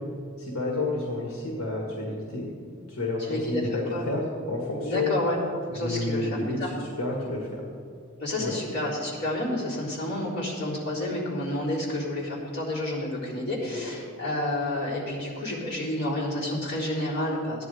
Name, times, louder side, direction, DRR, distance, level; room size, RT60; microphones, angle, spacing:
voice 1, 0.4-2.5 2.9-5.1 5.8-7.6 8.4-8.5 13.7-13.9, left 2 dB, 75° left, -2 dB, 1.9 m, -30 dB
voice 2, 3.2-3.6 3.9-4.0 4.9-5.4 5.7-6.7 8.2-17.6, left 1 dB, 50° left, -7 dB, 3.7 m, -30 dB
15.5 x 10.5 x 4.9 m, 2.3 s
head